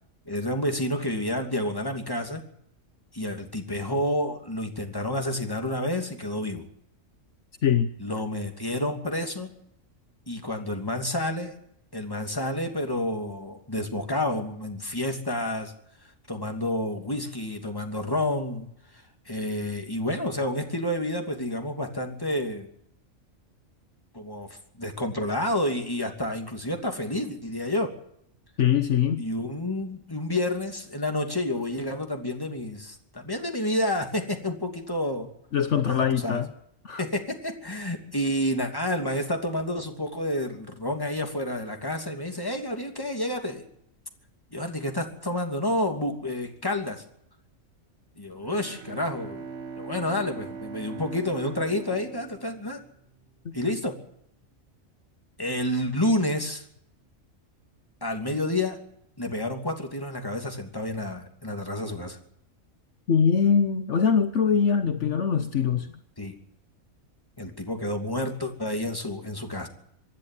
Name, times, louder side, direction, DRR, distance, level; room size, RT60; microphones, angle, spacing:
voice 1, 0.2-2.4 3.1-6.7 8.0-9.5 10.3-11.5 11.9-15.7 16.0-22.7 24.1-27.9 29.2-35.3 35.9-36.4 37.0-43.7 44.5-47.0 48.2-49.5 49.8-52.8 53.5-54.0 55.4-56.7 58.0-58.8 59.2-62.2 66.2-66.4 67.4-69.7, left 1 dB, 15° left, 2.8 m, -29 dB
voice 2, 7.6-7.9 28.6-29.2 35.5-36.5 36.8-37.0 53.4-53.5 63.1-65.9, left 7 dB, 65° left, 1.3 m, -22 dB
Bowed string instrument, 48.3-53.2, right 5 dB, 55° right, 1.9 m, -41 dB
25.5 x 11.0 x 9.7 m
omnidirectional pair, 1.4 m